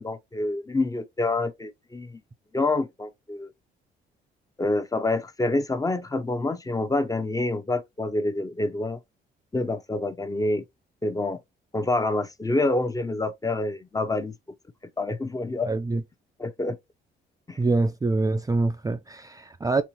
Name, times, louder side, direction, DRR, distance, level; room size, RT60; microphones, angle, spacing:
voice 1, 0.0-2.2 2.5-3.5 4.6-9.0 9.5-10.6 11.0-11.4 11.7-14.3 15.0-15.7 16.4-16.8 17.5-17.6, left 2 dB, 15° left, 0.7 m, -27 dB
voice 2, 15.6-16.0 17.6-19.8, right 3 dB, 20° right, 0.4 m, -25 dB
4.3 x 3.2 x 2.9 m
cardioid pair, 90°, 20 cm